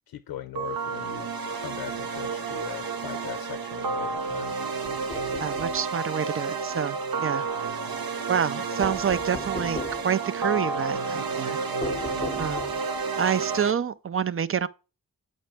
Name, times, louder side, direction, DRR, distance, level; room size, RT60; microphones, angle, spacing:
voice 1, 0.1-1.3 1.6-4.6, left 12 dB, 85° left, 0.5 m, -39 dB
sound 1, 0.6-13.7, right 4 dB, 80° right, 0.8 m, -30 dB
sound 2, 4.8-5.8 8.8-10.1 11.8-13.0, left 4 dB, 15° left, 0.5 m, -37 dB
voice 2, 5.4-7.5 8.3-11.6 12.4-12.7 13.2-14.7, right 8 dB, 40° right, 0.4 m, -28 dB
7.6 x 5.2 x 3.3 m
cardioid pair, 50°, 35 cm